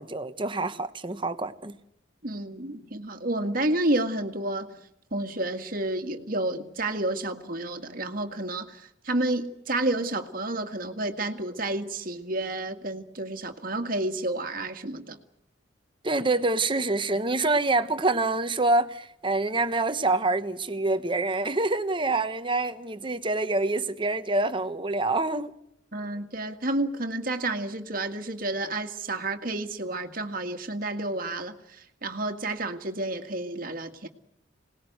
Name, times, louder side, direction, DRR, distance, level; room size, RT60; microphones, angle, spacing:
voice 1, 0.0-1.8 16.0-25.5, right 2 dB, 25° right, 10 dB, 1.1 m, -26 dB
voice 2, 2.2-4.8 5.1-15.2 25.9-34.1, right 2 dB, 50° right, 5 dB, 2.0 m, -30 dB
26.5 x 19.5 x 8.0 m, 0.80 s
head